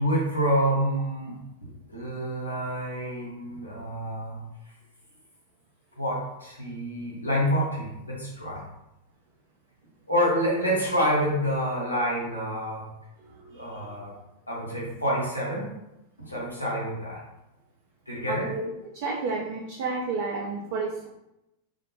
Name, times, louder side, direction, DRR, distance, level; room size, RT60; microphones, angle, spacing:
voice 1, 0.0-1.4 1.9-4.5 6.0-8.6 10.1-12.9 13.5-14.1 14.5-15.7 16.2-17.2 18.1-18.5, equal, 85° left, -5 dB, 0.8 m, -27 dB
voice 2, 13.4-13.9 18.3-18.7 18.9-21.1, right 4 dB, 45° right, -3 dB, 0.4 m, -31 dB
2.1 x 2.1 x 2.8 m, 0.87 s
figure-of-eight pair, 90°, 0 cm